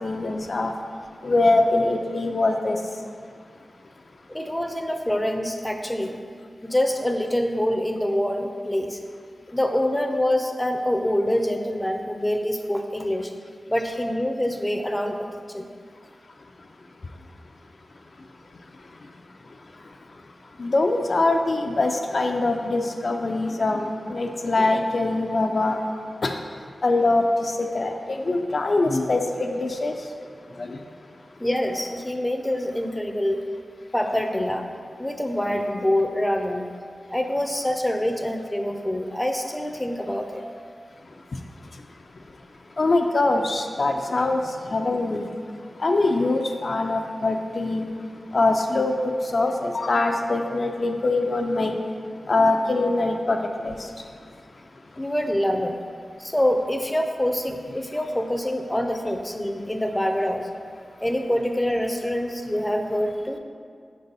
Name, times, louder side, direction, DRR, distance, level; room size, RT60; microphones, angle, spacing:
voice 1, 0.0-0.7 1.2-2.8 20.6-25.8 26.2-26.4 26.8-30.0 30.6-30.8 34.1-34.2 41.3-41.4 42.8-45.3 45.8-47.9 48.3-51.8 52.3-53.9, left 2 dB, 60° left, 3 dB, 0.4 m, -23 dB
voice 2, 4.3-6.2 6.6-9.0 9.5-13.3 13.7-15.7 31.4-33.4 33.9-34.7 35.0-36.7 37.1-40.4 55.0-55.8 56.2-60.5 61.0-63.4, left 1 dB, 10° left, 4 dB, 0.5 m, -25 dB
5.2 x 4.0 x 5.4 m, 2.2 s
cardioid pair, 60°, 0 cm